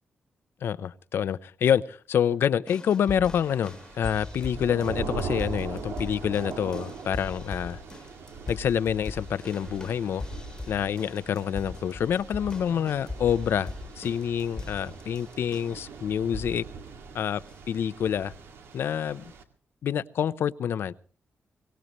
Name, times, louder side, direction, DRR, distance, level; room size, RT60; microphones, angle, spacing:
voice 1, 0.6-7.8 8.5-10.2 10.7-16.6 17.1-17.4 17.7-18.3 18.7-19.2 19.8-20.9, left 9 dB, 70° left, 0.7 m, -27 dB
sound 1, 2.7-15.9 16.3-16.7 17.5-17.6, left 2 dB, 15° left, 1.4 m, -41 dB
Thunder / Rain, 3.4-19.4, right 5 dB, 85° right, 2.1 m, -41 dB
23.5 x 18.5 x 3.1 m
wide cardioid pair, 165°, 4 cm